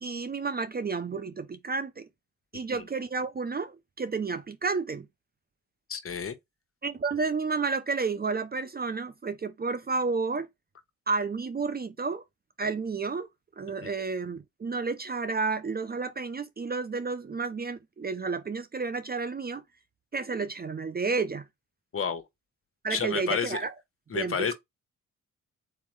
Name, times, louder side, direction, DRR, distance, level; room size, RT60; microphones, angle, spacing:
voice 1, 0.0-2.1 2.5-5.1 6.8-10.5 11.1-12.2 12.6-13.3 13.6-19.6 20.1-21.4 22.8-23.7 24.1-24.5, right 4 dB, 30° right, 0.5 m, -31 dB
voice 2, 5.9-6.4 13.8-13.9 21.9-22.2 22.9-23.6 24.1-24.5, left 6 dB, 40° left, 1.1 m, -30 dB
4.3 x 3.6 x 3.1 m
cardioid pair, 65°, 33 cm